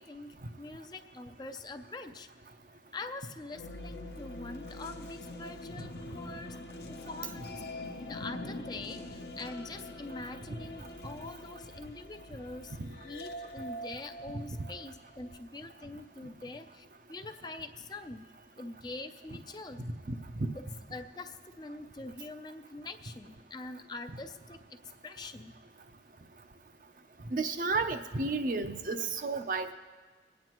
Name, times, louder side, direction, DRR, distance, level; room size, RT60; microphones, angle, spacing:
voice 1, 0.0-2.3 2.9-6.6 6.9-7.6 8.1-12.8 13.0-18.3 18.6-19.8 20.5-20.6 20.9-24.8 25.0-25.5, left 3 dB, 25° left, 7 dB, 0.4 m, -44 dB
sound 1, 3.5-15.4, left 1 dB, 65° left, 0.8 m, -44 dB
voice 2, 27.3-29.7, right 3 dB, 50° right, 7 dB, 0.6 m, -31 dB
25.0 x 9.4 x 3.0 m, 1.4 s
head